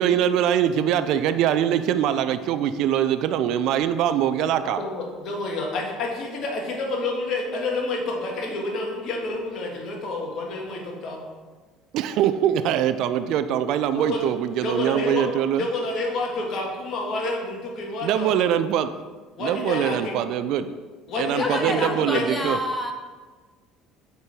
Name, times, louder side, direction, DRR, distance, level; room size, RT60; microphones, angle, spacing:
voice 1, 0.0-4.8 11.9-15.7 18.0-18.9 19.4-20.7 21.2-22.6, right 10 dB, 65° right, 11 dB, 0.3 m, -23 dB
voice 2, 4.8-11.2 13.9-14.2 14.6-15.3 15.6-18.5 19.4-20.1 21.1-22.3, left 2 dB, 55° left, 0 dB, 1.6 m, -29 dB
voice 3, 21.4-22.9, left 1 dB, 15° left, 3 dB, 1.1 m, -28 dB
6.7 x 4.4 x 4.8 m, 1.4 s
supercardioid pair, 90°, 0 cm